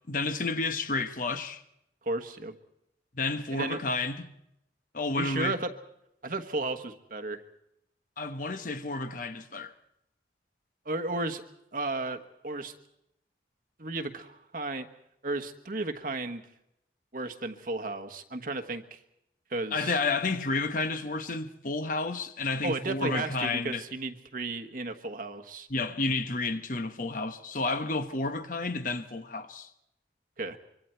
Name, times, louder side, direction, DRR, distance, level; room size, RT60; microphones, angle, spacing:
voice 1, 0.1-1.6 3.1-4.2 4.9-5.6 8.2-9.7 19.7-23.8 25.7-29.7, left 3 dB, 50° left, 1.1 m, -31 dB
voice 2, 2.0-2.5 3.5-3.8 5.1-5.7 6.2-7.4 10.8-11.4 11.7-12.7 13.8-14.9 15.2-16.4 17.1-19.0 19.5-20.0 22.6-25.7 30.4-30.6, right 2 dB, 50° right, 1.3 m, -34 dB
24.5 x 24.5 x 4.5 m
head